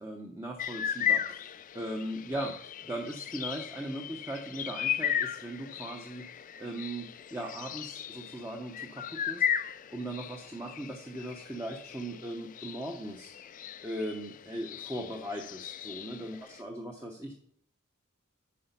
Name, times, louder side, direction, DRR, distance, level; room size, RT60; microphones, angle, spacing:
voice 1, 0.0-13.3 13.8-17.3, right 1 dB, 15° right, 1 dB, 0.8 m, -39 dB
sound 1, 0.6-16.6, left 9 dB, 35° left, 0.3 m, -36 dB
8.5 x 4.9 x 5.4 m, 0.65 s
head